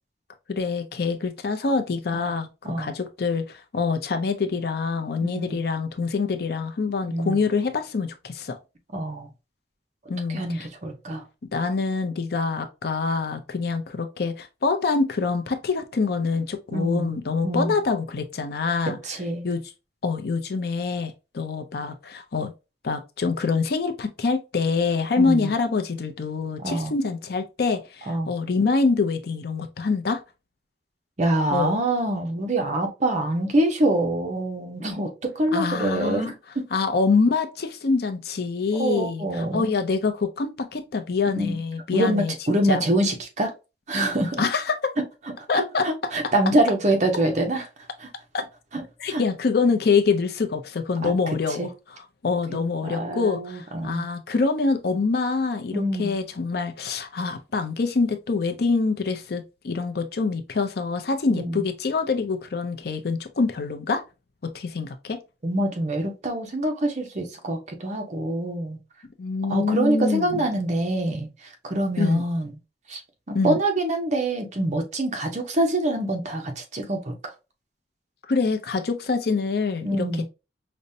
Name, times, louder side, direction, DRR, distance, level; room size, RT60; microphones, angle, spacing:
voice 1, 0.5-8.6 10.1-10.7 11.5-19.0 19.4-19.6 20.0-22.5 22.8-30.2 31.5-31.8 35.5-36.3 36.7-42.3 42.6-42.8 44.4-44.9 45.5-45.9 48.3-48.4 49.0-51.7 52.2-64.0 64.4-65.2 69.2-70.4 72.0-72.2 73.3-73.6 78.3-80.0, left 4 dB, 60° left, 0.5 m, -25 dB
voice 2, 5.2-5.6 7.1-7.4 8.9-9.3 10.3-11.2 16.7-17.2 17.4-17.7 18.9-19.5 25.2-25.5 26.6-26.9 28.1-28.3 31.2-36.6 38.7-39.8 41.4-41.6 41.9-43.5 43.9-44.4 45.5-47.6 48.0-48.1 48.7-49.2 51.0-51.1 51.6-51.7 52.8-54.1 55.7-56.1 61.3-61.6 65.4-68.8 69.5-71.3 71.6-72.5 72.9-73.0 73.3-77.3 79.8-80.3, right 1 dB, 45° right, 0.7 m, -25 dB
5.1 x 2.1 x 2.6 m
head